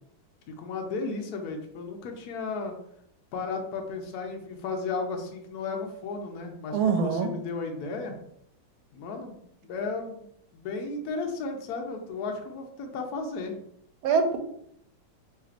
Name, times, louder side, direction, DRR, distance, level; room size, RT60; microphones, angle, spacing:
voice 1, 0.6-2.7 3.3-8.1 8.9-10.3 10.5-13.5, left 4 dB, 70° left, 3 dB, 0.9 m, -34 dB
voice 2, 6.7-7.3 14.0-14.4, right 5 dB, 90° right, 7 dB, 1.4 m, -23 dB
4.4 x 3.4 x 2.5 m, 0.72 s
omnidirectional pair, 2.2 m